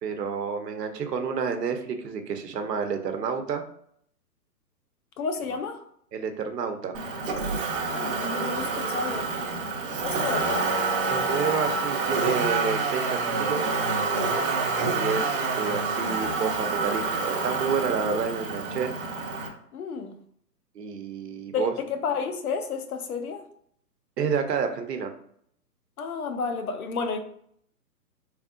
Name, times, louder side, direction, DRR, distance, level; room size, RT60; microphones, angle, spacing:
voice 1, 0.0-3.6 6.1-7.0 10.1-10.3 11.1-13.7 14.9-18.9 20.7-21.7 24.2-25.1, right 6 dB, 75° right, 0.9 m, -29 dB
voice 2, 5.2-5.8 7.9-9.3 10.0-10.7 19.7-20.2 21.5-23.4 26.0-27.2, left 5 dB, 60° left, 0.7 m, -31 dB
Motor vehicle (road), 6.9-19.5, right 4 dB, 35° right, 0.7 m, -27 dB
3.6 x 3.3 x 2.5 m
hypercardioid pair, 145°, 49 cm